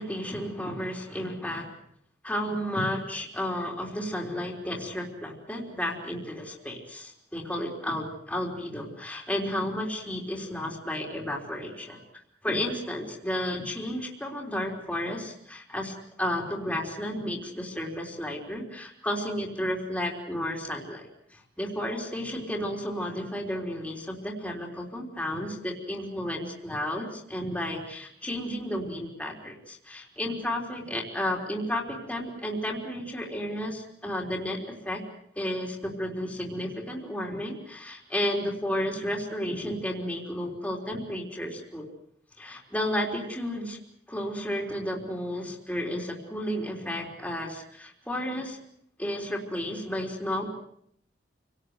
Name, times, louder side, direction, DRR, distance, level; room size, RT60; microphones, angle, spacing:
voice 1, 0.0-1.7 2.2-12.0 12.4-35.0 35.4-41.9 42.4-43.8 44.1-48.6 49.0-50.5, left 1 dB, 5° left, -1 dB, 3.8 m, -32 dB
28.5 x 18.5 x 8.1 m, 0.69 s
head